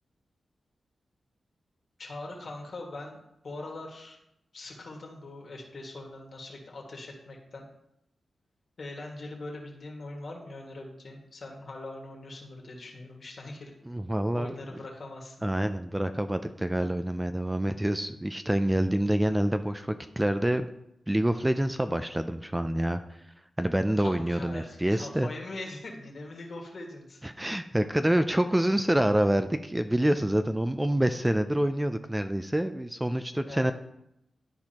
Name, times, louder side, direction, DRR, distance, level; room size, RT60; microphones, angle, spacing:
voice 1, 2.0-3.2 3.4-4.2 4.5-7.7 8.8-13.7 14.3-15.4 24.0-27.2 33.4-33.7, left 2 dB, 60° left, -1 dB, 1.8 m, -42 dB
voice 2, 13.9-14.5 15.4-20.7 21.1-23.0 23.6-25.3 27.2-33.7, right 1 dB, 10° right, 9 dB, 0.4 m, -27 dB
12.0 x 4.4 x 2.9 m, 0.82 s
cardioid pair, 70°, 0 cm